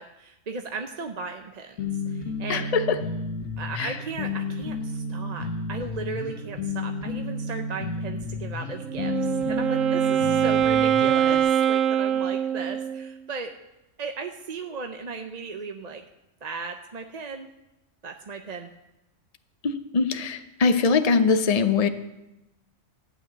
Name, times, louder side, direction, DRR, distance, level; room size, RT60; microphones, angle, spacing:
voice 1, 0.0-2.7 3.6-13.5 14.0-16.0 16.4-17.5 18.0-18.7, right 4 dB, 40° right, 4 dB, 0.7 m, -36 dB
sound 1, 1.8-11.4, left 3 dB, 80° left, 1.7 m, -32 dB
voice 2, 2.5-3.0 3.7-4.0 19.6-21.9, left 4 dB, 35° left, 9 dB, 0.7 m, -22 dB
Wind instrument woodwind instrument, 8.8-13.1, right 9 dB, 80° right, 1.0 m, -23 dB
14.5 x 6.2 x 9.1 m, 0.95 s
omnidirectional pair, 1.4 m